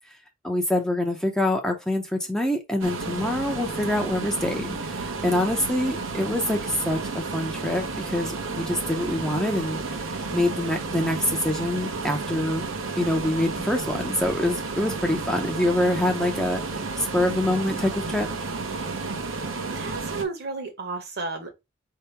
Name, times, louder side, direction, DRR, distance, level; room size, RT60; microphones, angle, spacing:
voice 1, 0.4-12.6 13.0-18.3, left 1 dB, 5° left, 0.5 m, -25 dB
sound 1, 2.8-20.2, right 3 dB, 85° right, 0.8 m, -32 dB
voice 2, 19.7-21.5, right 3 dB, 55° right, 1.1 m, -32 dB
4.6 x 2.9 x 3.3 m
head